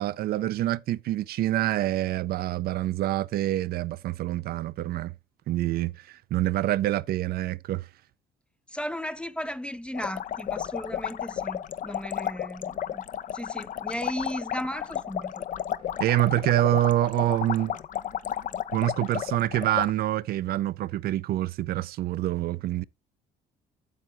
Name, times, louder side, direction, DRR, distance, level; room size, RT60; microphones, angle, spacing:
voice 1, 0.0-5.1 5.5-7.9 16.0-17.8 18.7-22.8, right 14 dB, 65° right, 0.5 m, -26 dB
voice 2, 8.7-13.0 13.3-15.4, equal, 5° left, 0.5 m, -35 dB
sound 1, 9.9-19.9, left 10 dB, 50° left, 0.6 m, -33 dB
9.2 x 7.5 x 3.4 m
cardioid pair, 110°, 17 cm